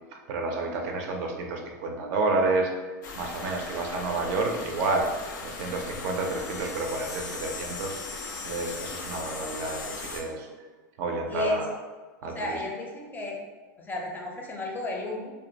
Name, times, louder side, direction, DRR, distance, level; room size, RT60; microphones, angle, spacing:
voice 1, 0.3-2.7 3.2-5.1 5.4-8.0 8.4-10.5 11.0-11.7 12.2-12.6, right 3 dB, 65° right, 2 dB, 0.4 m, -29 dB
sound 1, 3.0-10.2, left 4 dB, 80° left, 0.4 m, -38 dB
voice 2, 11.3-11.6 12.3-13.4 13.8-15.3, left 2 dB, 20° left, 0 dB, 0.5 m, -33 dB
2.3 x 2.1 x 2.7 m, 1.3 s
hypercardioid pair, 110°, 10 cm